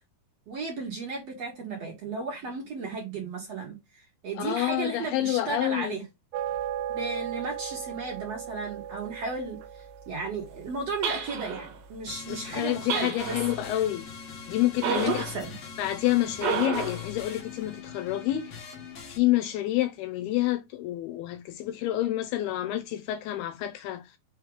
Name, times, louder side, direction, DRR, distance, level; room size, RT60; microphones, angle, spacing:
voice 1, 0.5-3.8 4.2-6.0 6.9-9.6 10.1-13.4 14.8-15.5, right 4 dB, 50° right, 2.4 m, -34 dB
voice 2, 4.4-6.0 12.3-14.0 14.5-15.1 15.8-18.6 19.1-24.1, left 14 dB, 80° left, 2.5 m, -28 dB
sound 1, 6.3-11.8, right 10 dB, 90° right, 2.7 m, -37 dB
sound 2, 11.0-11.8 12.9-13.7 14.8-15.4 16.4-17.1, right 7 dB, 70° right, 2.7 m, -31 dB
sound 3, 12.1-19.2, left 7 dB, 55° left, 2.0 m, -42 dB
6.2 x 3.2 x 4.8 m
omnidirectional pair, 4.8 m